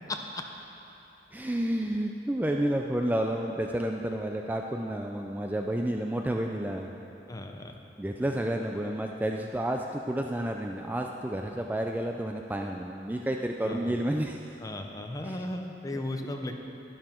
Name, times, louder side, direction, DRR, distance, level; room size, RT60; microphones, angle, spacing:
voice 1, 1.3-6.9 8.0-14.4 15.2-15.4 15.9-16.0, right 1 dB, 10° right, 2 dB, 0.3 m, -30 dB
voice 2, 7.3-7.7 13.6-13.9 14.6-16.6, left 1 dB, 20° left, 4 dB, 0.7 m, -36 dB
11.0 x 11.0 x 4.4 m, 2.9 s
head